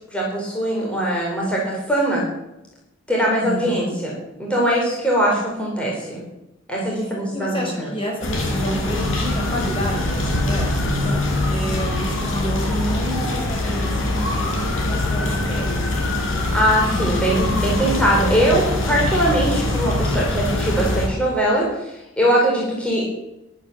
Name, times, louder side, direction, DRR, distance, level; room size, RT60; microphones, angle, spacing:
voice 1, 0.1-2.2 3.1-4.1 4.4-6.2 6.7-7.9 16.5-23.0, right 1 dB, 5° left, -3 dB, 4.4 m, -21 dB
voice 2, 3.4-4.0 6.9-15.8, equal, 25° left, 0 dB, 5.6 m, -30 dB
sound 1, 8.2-21.1, left 2 dB, 80° left, 5.0 m, -23 dB
21.5 x 9.2 x 7.0 m, 0.93 s
head